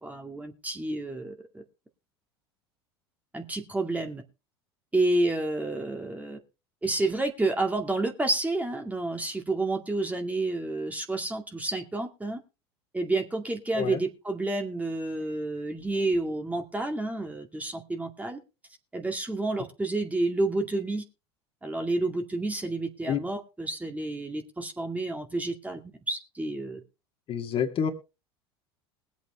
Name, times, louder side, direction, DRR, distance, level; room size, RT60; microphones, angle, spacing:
voice 1, 0.0-1.6 3.3-4.2 4.9-6.4 6.8-12.4 12.9-18.4 18.9-21.0 21.6-25.8 26.1-26.8, right 2 dB, 10° right, 2.2 m, -30 dB
voice 2, 27.3-27.9, left 8 dB, 40° left, 2.3 m, -28 dB
21.0 x 8.2 x 3.2 m
hypercardioid pair, 80°, 14 cm